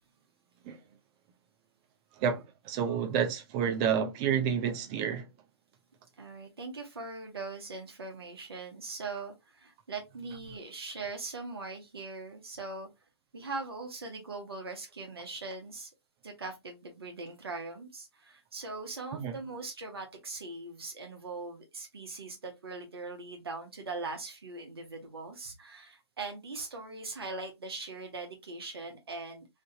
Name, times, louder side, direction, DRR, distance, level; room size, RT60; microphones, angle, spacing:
voice 1, 2.2-5.3 19.1-19.4, right 8 dB, 15° right, 0.4 m, -29 dB
voice 2, 6.2-12.9 13.3-15.9 16.2-29.5, right 3 dB, 60° right, 1.1 m, -41 dB
3.1 x 2.6 x 2.8 m
figure-of-eight pair, 145°, 14 cm